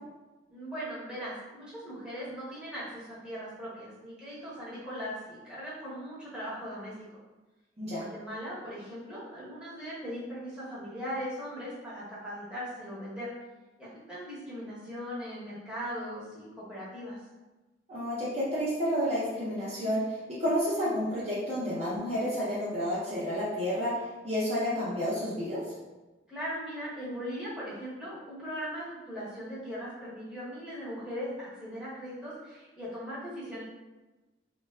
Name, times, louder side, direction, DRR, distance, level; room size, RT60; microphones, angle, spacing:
voice 1, 0.5-6.9 7.8-13.3 13.8-17.2 26.3-33.6, equal, 5° right, -10 dB, 0.8 m, -39 dB
voice 2, 17.9-23.9 24.2-25.6, equal, 35° right, -8 dB, 0.6 m, -30 dB
3.3 x 2.2 x 2.2 m, 1.2 s
head